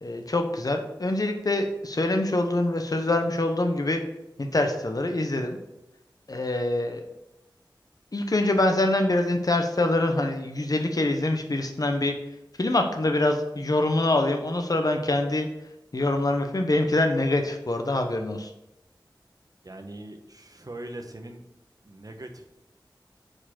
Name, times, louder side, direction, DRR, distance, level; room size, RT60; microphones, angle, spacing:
voice 1, 0.0-4.0 4.4-5.6 6.3-7.0 8.1-18.5, left 2 dB, 50° left, 4 dB, 0.8 m, -25 dB
voice 2, 19.6-21.5 21.8-22.5, right 1 dB, 50° right, 5 dB, 0.9 m, -41 dB
4.9 x 4.4 x 5.8 m, 0.88 s
wide cardioid pair, 50°, 8 cm